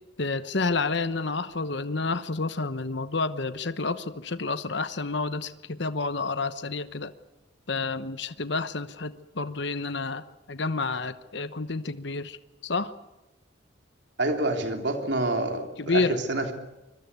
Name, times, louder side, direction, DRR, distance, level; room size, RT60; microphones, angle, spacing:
voice 1, 0.2-7.1 7.7-12.4 12.6-12.9 15.8-16.2, left 3 dB, 60° left, 12 dB, 1.0 m, -29 dB
voice 2, 14.2-16.5, right 2 dB, 60° right, 4 dB, 3.0 m, -27 dB
24.5 x 22.5 x 8.2 m, 1.0 s
head